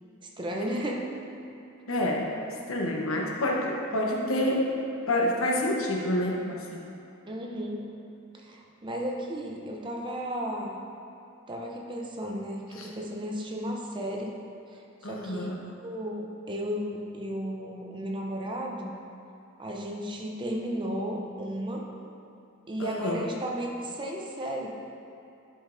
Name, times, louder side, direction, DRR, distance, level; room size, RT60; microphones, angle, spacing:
voice 1, 0.4-1.1 7.3-7.9 8.3-10.8 11.5-14.3 14.7-15.5 15.8-18.9 19.6-21.8 22.7-24.7, equal, 25° right, -1 dB, 0.6 m, -34 dB
voice 2, 1.9-2.4 2.7-4.8 5.1-6.9 12.7-12.9 15.0-15.6 22.8-23.2, left 1 dB, 85° left, -1 dB, 1.0 m, -28 dB
11.0 x 5.1 x 2.6 m, 2.8 s
head